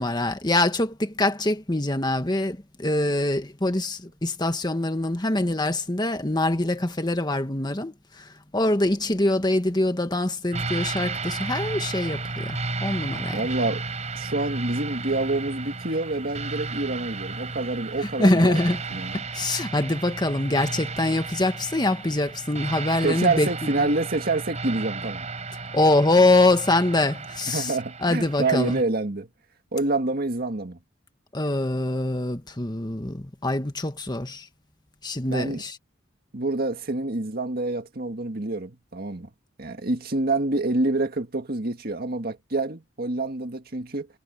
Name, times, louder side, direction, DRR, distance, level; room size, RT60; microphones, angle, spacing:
voice 1, 0.0-13.4 18.2-18.8 19.1-23.9 25.7-27.7 28.0-28.8 31.3-34.5 35.0-35.8, left 2 dB, 20° left, 1.6 m, -24 dB
sound 1, 10.5-28.8, right 3 dB, 35° right, 4.5 m, -34 dB
voice 2, 13.3-13.8 14.2-18.6 18.9-19.2 23.0-25.3 27.5-29.3 29.7-30.8 35.3-35.6 36.3-39.3 39.6-44.1, right 2 dB, 50° right, 1.8 m, -27 dB
head